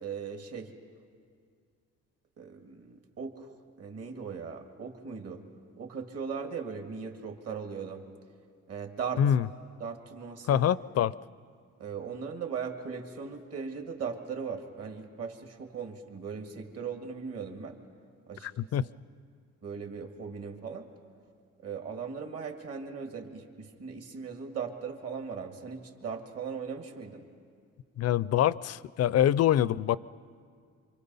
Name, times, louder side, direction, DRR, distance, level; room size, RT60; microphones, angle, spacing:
voice 1, 0.0-0.7 2.4-5.4 5.8-8.1 8.7-9.2 9.8-10.6 11.8-17.8 18.3-18.5 19.6-20.9 21.6-27.2, right 6 dB, 55° right, 4 dB, 2.0 m, -38 dB
voice 2, 10.5-11.1 18.4-18.9 28.0-30.0, left 10 dB, 55° left, 20 dB, 0.5 m, -25 dB
26.5 x 25.0 x 5.5 m, 2.1 s
cardioid pair, 90°, 30 cm